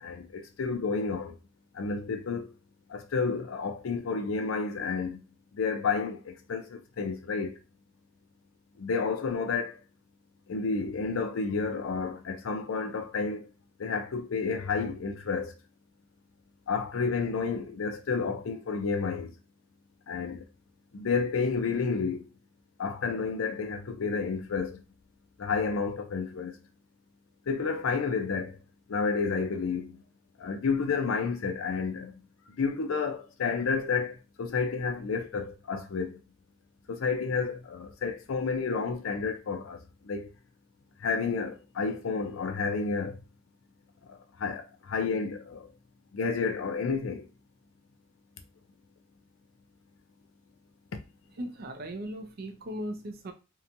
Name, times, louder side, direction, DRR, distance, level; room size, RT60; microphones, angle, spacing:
voice 1, 0.0-1.3 1.8-2.5 2.9-5.2 5.5-7.5 8.8-9.7 10.5-13.5 13.8-15.5 16.7-19.3 20.1-20.4 20.9-22.3 22.8-24.8 25.4-26.5 27.5-28.5 28.9-30.0 30.4-32.1 32.6-34.1 34.4-36.2 36.9-39.8 40.1-40.3 41.0-43.1 44.4-44.6 44.9-45.6 46.1-47.3, left 5 dB, 75° left, 0.5 m, -30 dB
voice 2, 51.4-53.3, right 1 dB, 50° right, 0.5 m, -37 dB
2.8 x 2.2 x 2.5 m
head